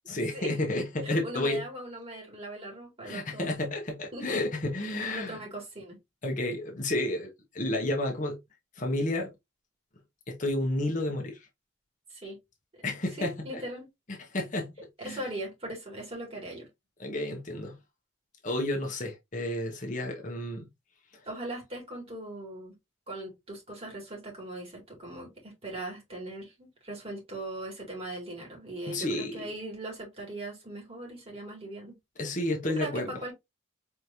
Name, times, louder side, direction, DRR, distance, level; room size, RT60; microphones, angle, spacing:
voice 1, 0.1-1.6 3.0-5.4 6.2-8.4 8.8-9.3 10.3-11.4 12.8-13.6 14.3-15.2 17.0-17.8 18.4-20.7 28.9-29.5 32.2-33.1, left 1 dB, 40° left, 0.9 m, -31 dB
voice 2, 1.0-3.5 4.1-4.3 5.1-6.0 12.1-12.4 12.7-12.8 13.2-13.9 15.0-16.7 21.3-22.8 23.1-32.0 32.6-33.3, right 1 dB, 30° right, 2.3 m, -39 dB
4.5 x 3.2 x 2.7 m
head